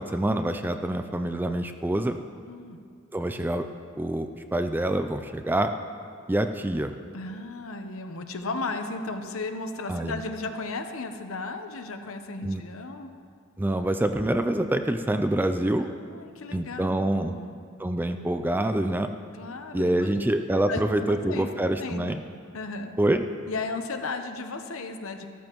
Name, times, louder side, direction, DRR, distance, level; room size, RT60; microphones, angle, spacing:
voice 1, 0.0-2.2 3.1-3.7 4.0-5.7 6.3-6.9 9.9-10.2 12.4-12.6 13.6-15.9 16.5-17.3 17.8-19.1 19.7-22.2 23.0-23.2, right 1 dB, 10° right, 7 dB, 0.3 m, -26 dB
voice 2, 2.5-2.8 7.1-13.1 15.8-17.5 19.3-20.2 20.7-21.5 21.8-22.2 22.5-22.9 23.5-25.2, left 3 dB, 70° left, 6 dB, 0.9 m, -35 dB
14.0 x 13.5 x 3.0 m, 2.3 s
head